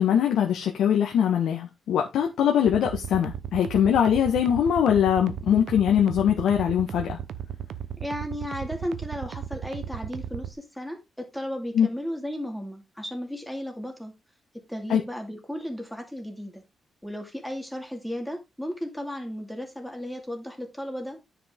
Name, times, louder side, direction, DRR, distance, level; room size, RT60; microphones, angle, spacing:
voice 1, 0.0-7.2 11.7-11.9 14.9-15.0, left 9 dB, 85° left, 1.5 m, -22 dB
sound 1, 2.7-10.5, right 9 dB, 75° right, 0.9 m, -35 dB
voice 2, 8.0-14.1 14.7-16.6 17.0-21.2, equal, 5° left, 2.2 m, -34 dB
9.7 x 5.9 x 3.7 m
cardioid pair, 135°, 0 cm